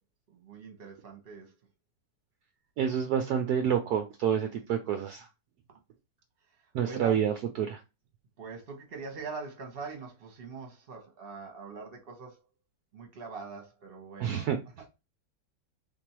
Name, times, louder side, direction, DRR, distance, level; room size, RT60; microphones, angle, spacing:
voice 1, 0.3-1.5 6.8-7.2 8.4-12.4 12.9-14.5, right 4 dB, 35° right, 1.1 m, -43 dB
voice 2, 2.8-5.3 6.7-7.8 14.2-14.6, right 8 dB, 75° right, 0.9 m, -28 dB
3.5 x 3.2 x 4.4 m
omnidirectional pair, 2.2 m